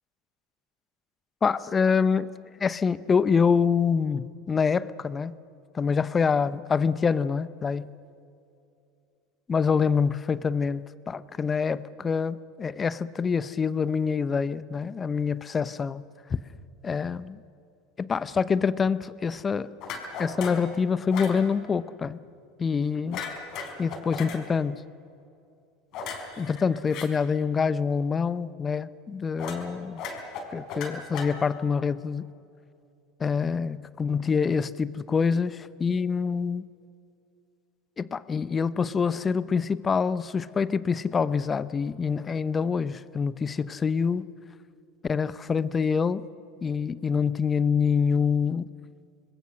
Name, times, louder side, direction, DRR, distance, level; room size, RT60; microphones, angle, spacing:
voice 1, 1.4-2.3 2.6-5.3 5.7-7.9 9.5-16.0 16.8-17.4 18.0-19.7 20.2-22.2 22.6-23.2 23.8-24.8 26.4-30.0 30.5-32.3 33.2-36.7 38.0-44.3 45.1-46.2 46.6-48.7, left 5 dB, 25° left, 16 dB, 0.9 m, -26 dB
sound 1, 19.8-20.7 21.1-21.4 23.1-24.4 25.9-27.1 29.4-29.7 30.0-31.7, left 5 dB, 55° left, 4.7 m, -36 dB
27.5 x 21.0 x 6.3 m, 2.5 s
hypercardioid pair, 80°, 0 cm